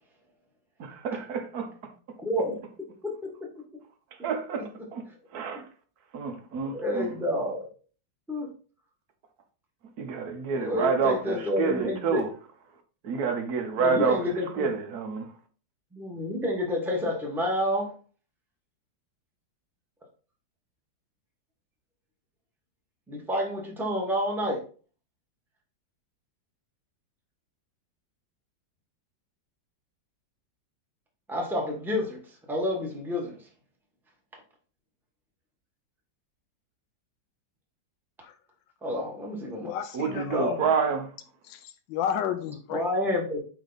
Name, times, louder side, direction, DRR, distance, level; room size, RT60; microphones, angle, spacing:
voice 1, 0.8-1.7 4.2-5.1 5.3-5.7 6.1-7.1 10.0-12.3 13.0-15.3 39.9-41.1, right 5 dB, 60° right, 1.3 m, -28 dB
voice 2, 2.2-2.5 3.0-3.5 6.7-7.7 8.3-8.5 10.5-12.2 13.8-14.7 15.9-17.9 23.1-24.6 31.3-32.2 32.5-33.3 38.8-39.7 40.3-40.5 42.7-43.4, left 1 dB, ahead, 1.2 m, -29 dB
voice 3, 39.6-40.6 41.5-42.9, left 9 dB, 85° left, 1.3 m, -32 dB
5.0 x 4.6 x 4.0 m
omnidirectional pair, 1.9 m